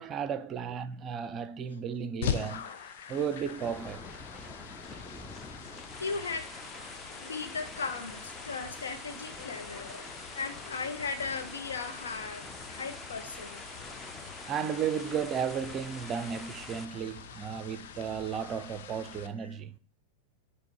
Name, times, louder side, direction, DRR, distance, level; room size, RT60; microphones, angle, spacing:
voice 1, 0.0-2.7 3.1-4.1 14.5-19.7, right 7 dB, 30° right, 0.5 m, -34 dB
sound 1, 2.2-19.3, left 8 dB, 55° left, 0.7 m, -43 dB
sound 2, 3.0-16.8, left 2 dB, 10° left, 0.7 m, -46 dB
voice 2, 6.0-6.5 6.8-13.6, left 4 dB, 70° left, 0.9 m, -37 dB
8.6 x 3.4 x 4.6 m
figure-of-eight pair, 90°, 0 cm